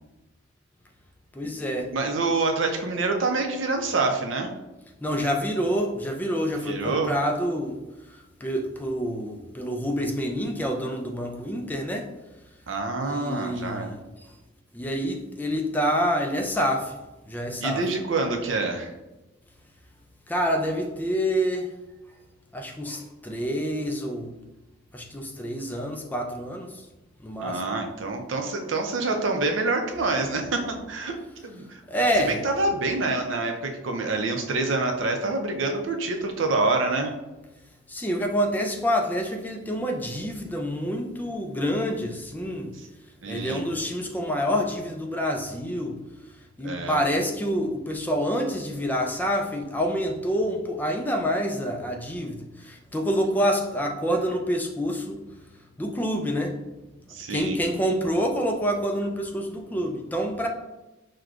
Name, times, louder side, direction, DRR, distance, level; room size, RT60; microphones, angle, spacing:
voice 1, 1.3-1.9 5.0-7.8 8.4-12.1 13.0-14.0 14.7-17.0 17.2-17.9 20.3-21.7 22.5-24.3 24.9-26.8 27.2-27.6 30.0-30.2 30.5-30.8 31.9-32.4 37.9-42.7 43.3-46.0 46.6-55.2 55.8-56.6 57.3-60.5, equal, 10° left, 2 dB, 0.3 m, -27 dB
voice 2, 1.9-4.5 6.6-7.1 12.7-13.9 17.6-18.9 27.4-31.2 31.4-31.8 32.4-37.1 43.2-43.6 46.6-47.0 57.1-57.6, right 3 dB, 75° right, 4 dB, 0.5 m, -26 dB
6.0 x 2.2 x 2.5 m, 1.0 s
head